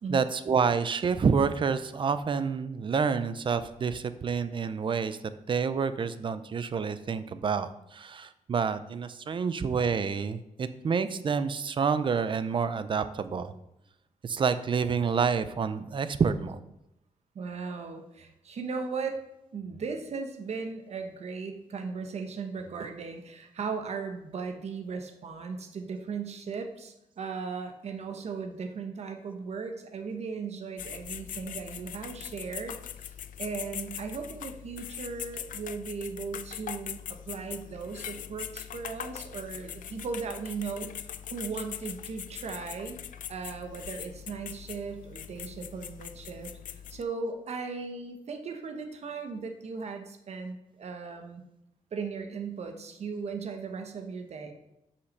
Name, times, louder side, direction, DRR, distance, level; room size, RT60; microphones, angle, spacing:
voice 1, 0.1-5.2 5.5-13.5 14.2-16.6, right 5 dB, 40° right, 12 dB, 0.5 m, -28 dB
voice 2, 17.3-19.2 19.5-33.1 33.4-43.0 43.3-51.4 51.9-54.5, right 5 dB, 55° right, 5 dB, 1.1 m, -37 dB
sound 1, 30.8-47.0, left 10 dB, 85° left, 0.5 m, -41 dB
8.3 x 5.7 x 6.6 m, 0.84 s
wide cardioid pair, 175°, 13 cm